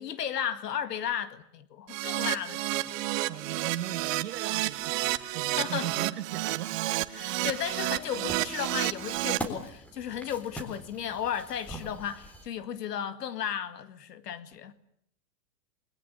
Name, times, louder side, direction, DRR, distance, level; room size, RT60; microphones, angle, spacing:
voice 1, 0.0-3.0 5.1-5.9 7.1-14.7, left 9 dB, 90° left, 2.2 m, -35 dB
Keyboard (musical), 1.9-9.4, right 17 dB, 55° right, 1.5 m, -31 dB
voice 2, 3.3-6.8, right 13 dB, 85° right, 1.2 m, -38 dB
sound 1, 7.4-12.5, right 1 dB, 5° left, 3.6 m, -43 dB
28.0 x 21.5 x 8.7 m
hypercardioid pair, 135°, 47 cm